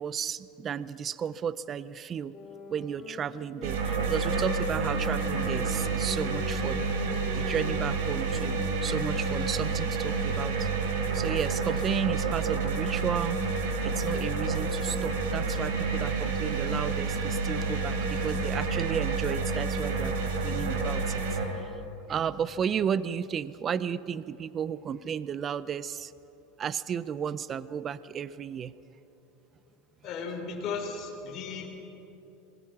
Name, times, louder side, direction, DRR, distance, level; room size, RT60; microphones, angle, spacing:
voice 1, 0.0-2.3 2.7-6.8 7.3-10.7 10.9-13.4 13.8-21.6 22.1-26.1 26.6-28.7, right 7 dB, 30° right, 16 dB, 0.6 m, -33 dB
sound 1, 2.3-12.0, left 4 dB, 25° left, 3.4 m, -45 dB
sound 2, 3.6-21.5, right 4 dB, 80° right, 3.8 m, -29 dB
voice 2, 30.0-31.7, left 5 dB, 40° left, -1 dB, 4.6 m, -35 dB
26.5 x 21.0 x 6.1 m, 3.0 s
supercardioid pair, 135°, 0 cm